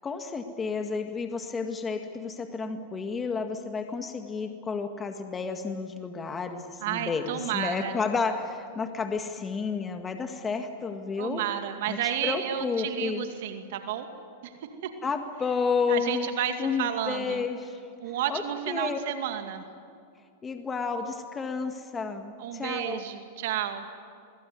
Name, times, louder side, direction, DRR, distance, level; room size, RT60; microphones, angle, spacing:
voice 1, 0.0-11.4 11.9-13.2 15.0-16.3 16.6-17.8 18.3-19.0 20.4-23.0, left 5 dB, 20° left, 5 dB, 1.8 m, -31 dB
voice 2, 6.8-8.0 11.2-14.1 14.4-14.5 14.8-14.9 15.9-17.4 18.0-19.6 22.4-23.9, right 10 dB, 70° right, 6 dB, 2.3 m, -31 dB
24.5 x 22.5 x 9.5 m, 2.3 s
hypercardioid pair, 120°, 0 cm